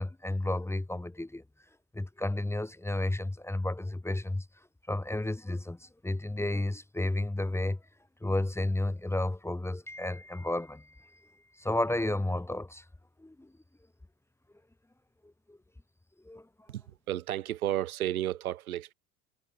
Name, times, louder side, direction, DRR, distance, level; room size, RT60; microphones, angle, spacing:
voice 1, 0.0-1.4 1.9-4.5 4.9-7.8 8.2-11.3 11.6-12.8 13.2-13.5 15.2-15.6 16.2-16.5, left 1 dB, 5° left, 1.9 m, -32 dB
voice 2, 16.7-18.9, right 13 dB, 75° right, 2.3 m, -32 dB
figure-of-eight pair, 75°, 44 cm